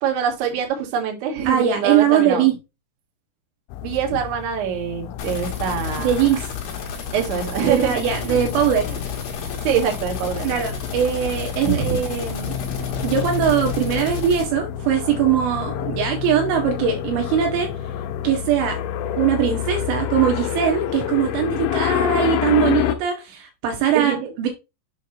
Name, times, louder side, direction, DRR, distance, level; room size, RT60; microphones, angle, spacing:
voice 1, 0.0-2.5 3.8-6.1 7.1-8.4 8.9-9.0 9.6-10.5 11.6-12.0 23.9-24.3, right 7 dB, 65° right, 2 dB, 3.4 m, -24 dB
voice 2, 1.5-2.5 6.0-6.5 7.6-8.9 10.4-12.5 13.0-17.7 18.2-18.8 19.2-24.5, right 8 dB, 80° right, 3 dB, 3.5 m, -21 dB
sound 1, 3.7-23.0, left 11 dB, 85° left, 3.1 m, -28 dB
sound 2, 5.2-14.5, left 6 dB, 55° left, 2.9 m, -32 dB
7.7 x 3.1 x 5.8 m, 0.26 s
omnidirectional pair, 5.6 m